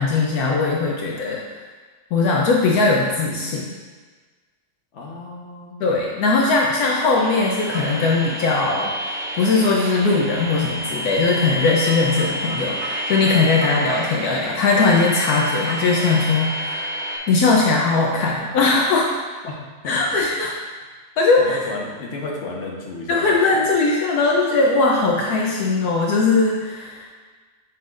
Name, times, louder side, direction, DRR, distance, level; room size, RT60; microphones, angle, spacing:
voice 1, 0.0-1.4 2.1-3.7 5.8-16.9 17.3-19.1 19.9-20.5 21.2-21.6 23.1-27.0, left 3 dB, 75° left, -2 dB, 1.2 m, -19 dB
voice 2, 4.9-5.8 19.5-19.6 19.8-19.9 21.4-23.6, left 2 dB, 50° left, -2 dB, 1.3 m, -33 dB
sound 1, 7.2-17.2, right 1 dB, 70° right, 1.4 m, -29 dB
8.2 x 5.7 x 2.5 m, 1.4 s
omnidirectional pair, 1.7 m